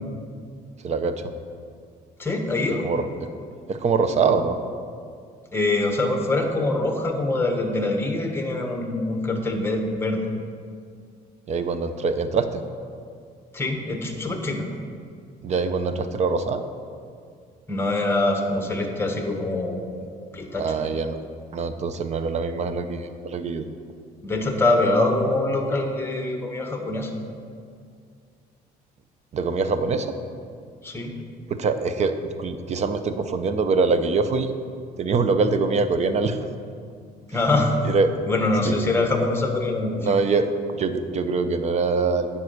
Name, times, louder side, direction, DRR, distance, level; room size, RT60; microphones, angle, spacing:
voice 1, 0.8-1.2 2.8-3.3 3.7-4.6 11.5-12.6 15.4-16.6 20.5-21.2 21.5-23.7 29.3-30.1 31.5-34.5 35.0-36.4 37.9-38.1 38.6-38.7 40.0-40.5 40.8-42.3, right 4 dB, 40° right, 10 dB, 0.7 m, -24 dB
voice 2, 2.2-2.8 5.5-10.3 13.5-14.7 17.7-19.8 20.3-20.7 24.2-27.2 30.8-31.1 37.3-37.8 38.3-40.1, left 2 dB, 15° left, 3 dB, 1.3 m, -24 dB
9.6 x 5.5 x 6.5 m, 2.2 s
cardioid pair, 110°, 17 cm